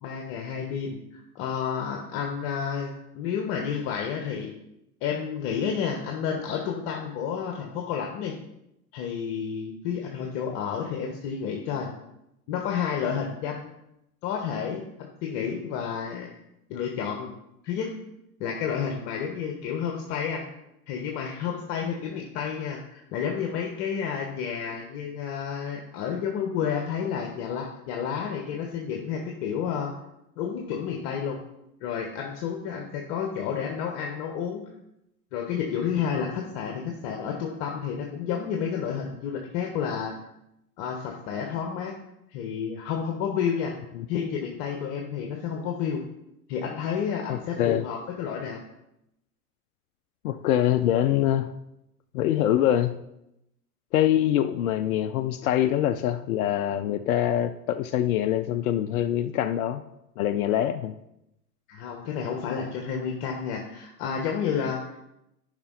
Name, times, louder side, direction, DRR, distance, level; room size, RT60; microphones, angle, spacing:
voice 1, 0.0-4.5 5.0-8.4 8.9-11.9 12.5-13.7 14.2-16.3 16.7-17.3 17.6-17.9 18.4-20.5 20.9-29.9 30.4-31.4 31.8-34.6 35.3-40.1 40.8-41.9 42.3-43.7 44.1-46.0 46.5-48.6 61.7-64.8, left 7 dB, 50° left, 2 dB, 1.3 m, -30 dB
voice 2, 47.3-47.9 50.2-51.5 52.1-53.0 53.9-59.8 60.2-60.9, left 11 dB, 65° left, 10 dB, 0.6 m, -24 dB
10.5 x 5.3 x 4.0 m, 0.85 s
figure-of-eight pair, 80°, 46 cm